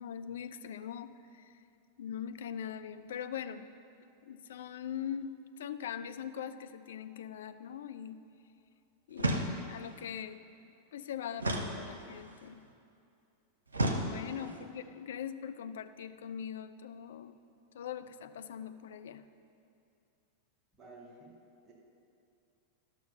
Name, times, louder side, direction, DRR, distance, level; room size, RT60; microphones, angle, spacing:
voice 1, 0.0-1.6 2.0-3.7 4.2-8.2 9.1-10.5 10.9-12.6 14.0-17.4 17.7-19.3, left 8 dB, 60° left, 10 dB, 0.4 m, -42 dB
sound 1, 9.2-9.9 11.4-12.4 13.7-14.6, right 1 dB, 75° right, 0.9 m, -33 dB
voice 2, 14.4-14.7 20.8-21.3 21.6-21.7, right 2 dB, 15° right, -5 dB, 2.1 m, -52 dB
12.0 x 6.4 x 5.5 m, 2.5 s
figure-of-eight pair, 90°, 0 cm